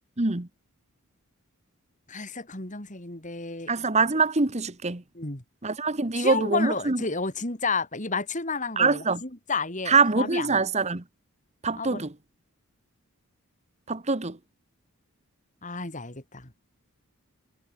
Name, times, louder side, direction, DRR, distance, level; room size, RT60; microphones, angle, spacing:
voice 1, 0.2-0.5 3.7-5.0 5.6-7.0 8.8-9.2 9.9-11.0 11.6-12.1 13.9-14.4, right 4 dB, 30° right, 1.2 m, -24 dB
voice 2, 2.1-3.7 5.1-5.4 6.1-10.6 11.8-12.0 15.6-16.5, left 4 dB, 35° left, 3.1 m, -31 dB
head